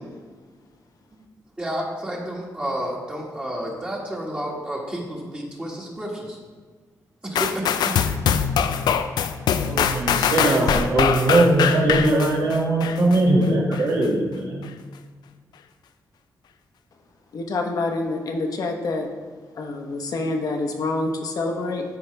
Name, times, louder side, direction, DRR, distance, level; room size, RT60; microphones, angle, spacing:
voice 1, 1.6-6.4 7.2-7.6, equal, 15° right, -4 dB, 1.6 m, -30 dB
sound 1, 7.4-13.2 13.7-13.8, left 8 dB, 85° left, 0.4 m, -22 dB
voice 2, 9.6-14.7, right 2 dB, 60° right, -3 dB, 1.9 m, -20 dB
voice 3, 17.3-19.1 19.5-21.8, left 2 dB, 60° left, 3 dB, 1.0 m, -26 dB
12.5 x 4.7 x 3.3 m, 1.5 s
cardioid pair, 120°, 7 cm